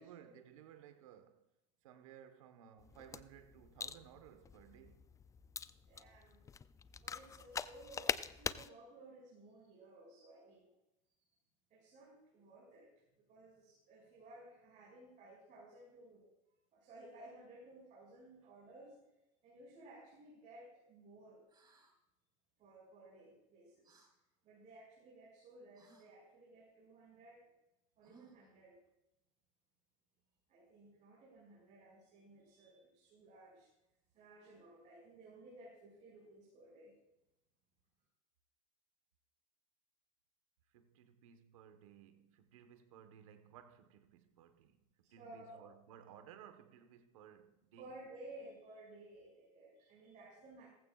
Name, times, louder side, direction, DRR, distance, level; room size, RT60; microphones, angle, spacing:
voice 1, 0.0-1.5 1.8-5.2 40.7-48.0, right 9 dB, 90° right, 1.3 m, -59 dB
sound 1, 2.8-8.7, left 6 dB, 20° left, 0.4 m, -44 dB
voice 2, 5.9-6.4 7.0-10.7 11.7-12.9 13.2-16.3 16.7-19.0 19.4-21.4 22.6-24.0 24.4-27.5 28.0-28.8 30.5-33.7 34.1-36.9 45.2-45.7 47.8-50.7, right 2 dB, 50° right, 6.1 m, -57 dB
sound 2, 21.5-21.9 23.8-24.1 25.7-26.1 28.0-28.5, right 5 dB, 25° right, 3.1 m, -64 dB
18.0 x 15.0 x 2.5 m
supercardioid pair, 105°, 17 cm